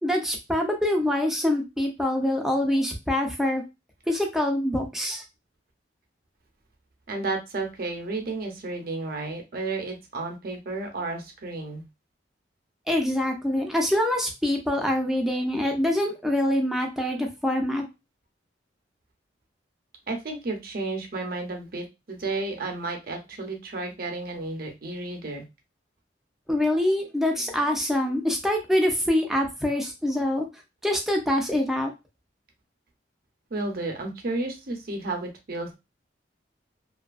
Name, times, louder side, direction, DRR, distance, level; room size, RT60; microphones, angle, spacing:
voice 1, 0.0-3.6 4.1-5.2 12.9-17.8 26.5-30.5 30.8-31.9, left 1 dB, ahead, 1 dB, 0.5 m, -25 dB
voice 2, 7.1-11.8 20.1-25.4 33.5-35.8, right 3 dB, 55° right, 3 dB, 0.7 m, -32 dB
2.7 x 2.4 x 2.3 m, 0.24 s
head